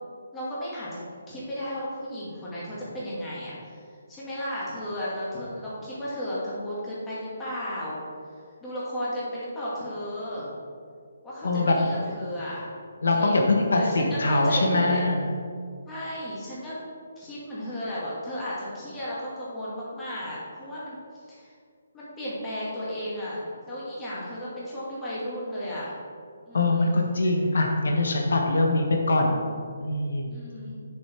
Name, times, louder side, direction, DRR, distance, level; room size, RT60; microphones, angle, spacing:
voice 1, 0.3-1.0 1.3-3.7 4.1-8.0 8.6-10.5 11.2-12.7 13.1-15.0 15.9-16.8 17.2-21.0 21.3-21.5 21.9-25.9 26.5-27.0 30.3-30.8, equal, 10° left, -9 dB, 2.2 m, -34 dB
voice 2, 11.4-11.8 13.0-15.3 26.5-29.4 29.8-30.3, left 2 dB, 75° left, 1 dB, 1.3 m, -23 dB
8.3 x 7.1 x 4.5 m, 2.2 s
hypercardioid pair, 165°, 0 cm